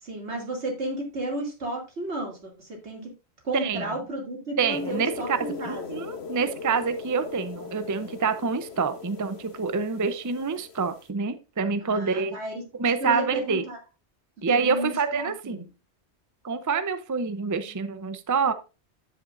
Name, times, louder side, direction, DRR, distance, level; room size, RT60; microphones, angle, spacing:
voice 1, 0.0-3.1 3.4-6.0 11.8-12.6 13.0-13.8 14.5-15.7 17.6-17.8, right 1 dB, 80° right, 0 dB, 2.8 m, -33 dB
voice 2, 3.5-3.8 4.6-5.4 5.6-12.4 12.7-13.6 14.4-15.6 16.4-18.5, right 5 dB, 25° right, 11 dB, 0.5 m, -27 dB
sound 1, 4.7-11.1, left 5 dB, 70° left, 1.3 m, -39 dB
9.8 x 7.8 x 2.5 m, 0.30 s
omnidirectional pair, 1.1 m